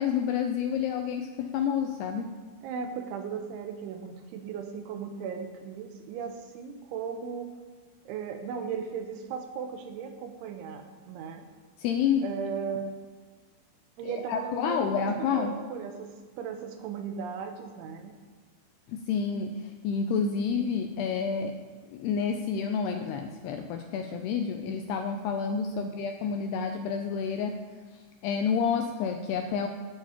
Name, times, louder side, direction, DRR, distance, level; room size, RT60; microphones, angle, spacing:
voice 1, 0.0-2.3 11.8-12.3 14.0-15.6 19.0-21.6 21.9-27.6 27.9-29.7, left 6 dB, 85° left, 5 dB, 2.4 m, -29 dB
voice 2, 2.6-7.5 8.1-11.5 12.2-12.9 14.0-16.1 16.4-18.1 25.7-25.9, right 6 dB, 85° right, 6 dB, 3.4 m, -37 dB
8.7 x 7.3 x 8.9 m, 1.5 s
omnidirectional pair, 5.3 m